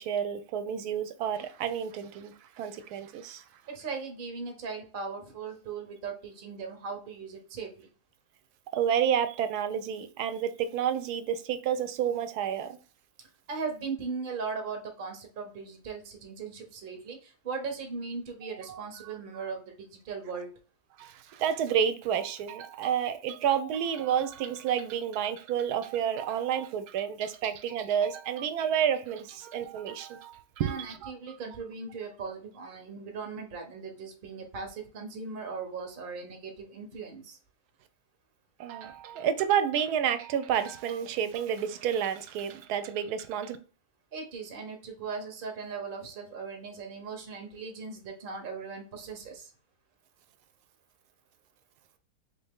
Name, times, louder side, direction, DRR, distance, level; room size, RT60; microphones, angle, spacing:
voice 1, 0.0-3.4 8.7-12.8 18.7-19.1 21.0-31.1 38.6-43.6, right 8 dB, 75° right, 1.1 m, -30 dB
voice 2, 3.7-7.9 13.5-20.5 30.6-37.4 44.1-49.5, right 5 dB, 45° right, 0.8 m, -38 dB
3.6 x 2.8 x 3.5 m
omnidirectional pair, 1.7 m